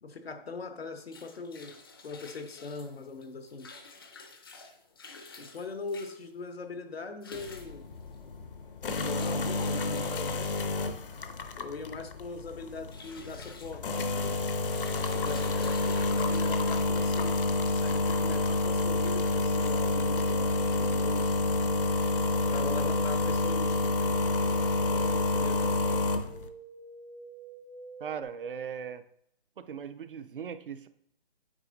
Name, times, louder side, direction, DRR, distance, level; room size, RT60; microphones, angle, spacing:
voice 1, 0.0-3.7 5.4-7.9 9.0-10.5 11.6-14.5 15.2-21.4 22.4-26.2, left 3 dB, 85° left, 8 dB, 1.1 m, -41 dB
sound 1, 0.8-19.3, left 3 dB, 25° left, 0.5 m, -50 dB
sound 2, 7.3-26.5, left 2 dB, 65° left, 0.8 m, -29 dB
sound 3, 18.7-28.2, right 3 dB, 80° right, 1.0 m, -47 dB
voice 2, 28.0-29.0 29.6-30.9, right 7 dB, 65° right, 11 dB, 0.6 m, -38 dB
8.9 x 4.3 x 3.8 m, 0.71 s
hypercardioid pair, 160°, 30 cm